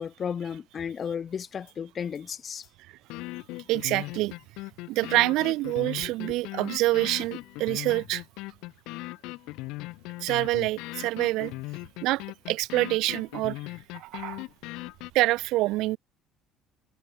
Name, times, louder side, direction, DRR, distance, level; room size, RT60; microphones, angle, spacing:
voice 1, 0.0-2.7 6.0-6.4, left 7 dB, 35° left, 1.7 m, -34 dB
sound 1, 1.7-1.8 2.1-2.2 2.6-2.7 3.1-15.1, left 21 dB, 80° left, 3.8 m, -39 dB
voice 2, 3.7-4.3 4.9-8.2 10.2-11.5 12.0-13.6 13.9-14.4 15.1-16.0, right 18 dB, 75° right, 1.1 m, -26 dB
cardioid pair, 120°, 0 cm